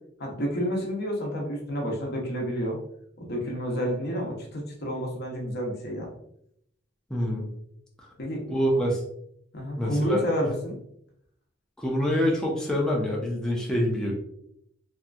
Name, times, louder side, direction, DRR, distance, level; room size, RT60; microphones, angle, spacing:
voice 1, 0.2-2.8 3.2-6.1 8.2-8.6 9.5-10.8, equal, 55° left, -1 dB, 0.7 m, -30 dB
voice 2, 7.1-7.5 8.5-9.0 9.8-10.2 11.8-14.1, equal, 5° left, -2 dB, 0.5 m, -25 dB
2.8 x 2.5 x 2.3 m, 0.72 s
head